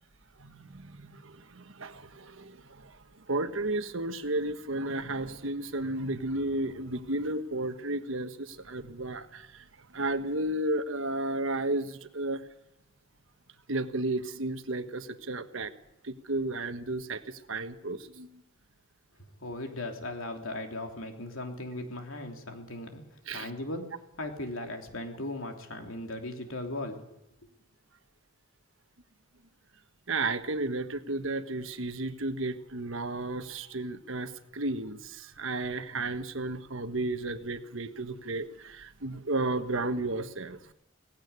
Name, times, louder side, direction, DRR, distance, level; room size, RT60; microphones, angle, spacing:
voice 1, 0.4-3.0 3.3-9.7 9.9-12.4 13.7-15.7 16.0-18.3 23.3-23.5 30.1-40.6, right 2 dB, 65° right, 9 dB, 1.3 m, -33 dB
voice 2, 19.4-23.8 24.2-27.0, left 1 dB, 75° left, 3 dB, 3.2 m, -38 dB
18.0 x 16.5 x 9.7 m, 0.85 s
head